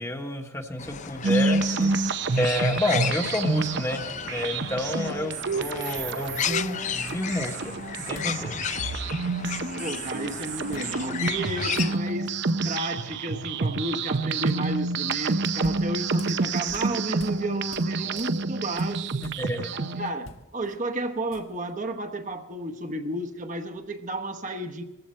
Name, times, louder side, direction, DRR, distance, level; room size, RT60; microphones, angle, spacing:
voice 1, 0.0-1.9 2.4-7.7 8.1-8.6 19.2-19.7, left 1 dB, 15° left, 4 dB, 1.2 m, -30 dB
sound 1, 0.8-12.0, left 8 dB, 35° left, 0.5 m, -34 dB
sound 2, 1.2-20.1, right 3 dB, 60° right, 0.7 m, -28 dB
sound 3, 5.3-5.4 5.9-6.6 7.1-7.7 8.1-8.4 8.7-8.9 9.2-10.1 10.7-10.9 11.2-11.3 11.6-12.3 15.2-17.4 17.7-19.7 20.1-21.7, left 2 dB, 85° left, 1.3 m, -48 dB
voice 2, 9.8-12.4 12.6-19.3 19.7-24.8, right 1 dB, 40° right, 5 dB, 1.0 m, -32 dB
19.0 x 15.0 x 4.4 m, 1.0 s
head